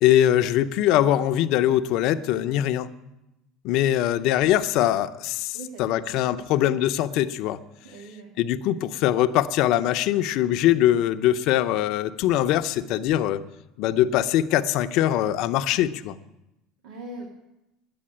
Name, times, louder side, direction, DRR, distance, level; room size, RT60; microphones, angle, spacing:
voice 1, 0.0-2.9 3.6-7.6 8.4-13.4 13.8-16.2, left 12 dB, 65° left, 10 dB, 0.7 m, -22 dB
voice 2, 5.5-6.7 7.8-8.3 16.8-17.3, right 2 dB, 80° right, 1 dB, 2.1 m, -42 dB
10.0 x 8.7 x 10.0 m, 0.91 s
supercardioid pair, 115°, 0 cm